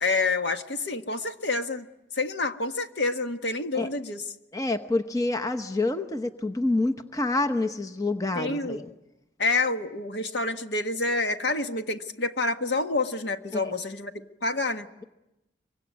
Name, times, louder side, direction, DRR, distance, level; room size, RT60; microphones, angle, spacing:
voice 1, 0.0-1.8 2.2-4.2 8.3-8.8 9.4-14.1 14.4-14.9, left 3 dB, 70° left, 7 dB, 1.5 m, -28 dB
voice 2, 4.5-8.9 13.5-13.7, left 2 dB, 20° left, 7 dB, 1.0 m, -27 dB
24.5 x 24.0 x 9.5 m, 0.93 s
head